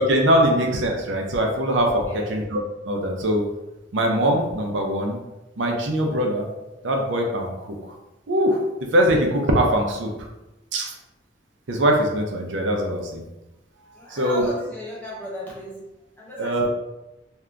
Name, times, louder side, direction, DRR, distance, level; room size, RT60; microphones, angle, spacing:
voice 1, 0.0-2.0 2.3-2.6 2.8-3.4 3.9-5.2 5.6-6.5 6.8-8.0 8.3-8.6 8.9-10.1 10.7-10.9 11.7-13.2 14.1-14.5 16.4-16.7, equal, 80° right, 1 dB, 0.6 m, -22 dB
voice 2, 2.0-2.4 13.9-15.8 16.2-16.7, equal, 10° left, -6 dB, 1.0 m, -36 dB
2.7 x 2.5 x 3.3 m, 0.98 s
head